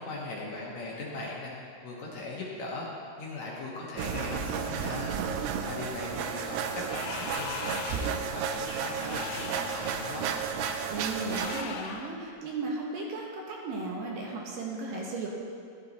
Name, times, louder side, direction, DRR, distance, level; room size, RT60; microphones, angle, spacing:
voice 1, 0.0-1.5 1.8-2.9 3.2-10.3, left 2 dB, 65° left, -4 dB, 1.8 m, -39 dB
sound 1, 4.0-11.6, right 6 dB, 85° right, 2.9 m, -33 dB
sound 2, 6.8-8.3 8.9-9.9 11.3-12.2, left 7 dB, 85° left, 2.1 m, -39 dB
voice 2, 10.9-15.3, right 3 dB, 65° right, -2 dB, 2.4 m, -35 dB
11.5 x 11.5 x 4.1 m, 2.5 s
omnidirectional pair, 5.1 m